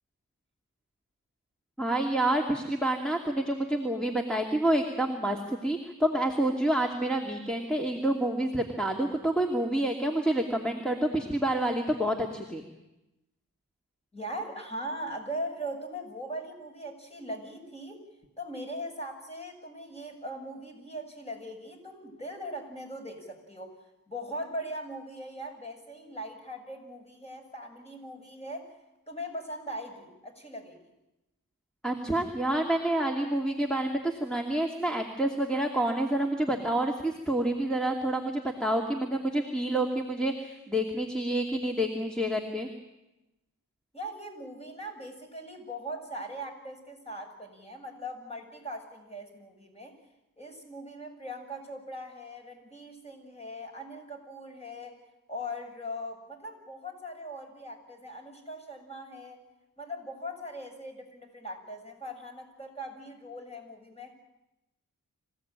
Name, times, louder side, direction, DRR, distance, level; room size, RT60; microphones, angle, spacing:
voice 1, 1.8-12.6 31.8-42.7, right 1 dB, ahead, 1 dB, 2.6 m, -28 dB
voice 2, 14.1-18.0 18.4-28.8 29.1-30.8 43.9-50.0 50.4-55.0 55.3-59.4 59.8-64.1, equal, 20° left, 2 dB, 7.0 m, -40 dB
26.5 x 16.5 x 9.0 m, 0.95 s
wide cardioid pair, 50°, 34 cm